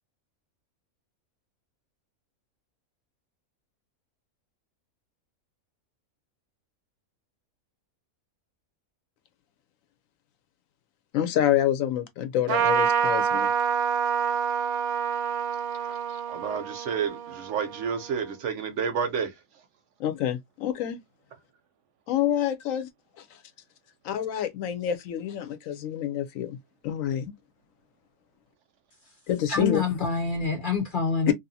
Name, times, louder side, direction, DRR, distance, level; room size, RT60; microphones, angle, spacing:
voice 1, 11.1-13.5 16.1-16.2 20.0-21.0 22.1-22.9 23.2-23.4 24.0-26.6 26.8-27.3 29.3-29.8 31.3-31.4, left 11 dB, 70° left, 0.9 m, -27 dB
Trumpet, 12.5-18.3, right 7 dB, 85° right, 1.1 m, -27 dB
voice 2, 16.3-19.4, right 7 dB, 70° right, 0.8 m, -30 dB
voice 3, 29.5-31.3, left 4 dB, 50° left, 0.6 m, -26 dB
2.7 x 2.4 x 2.6 m
omnidirectional pair, 1.5 m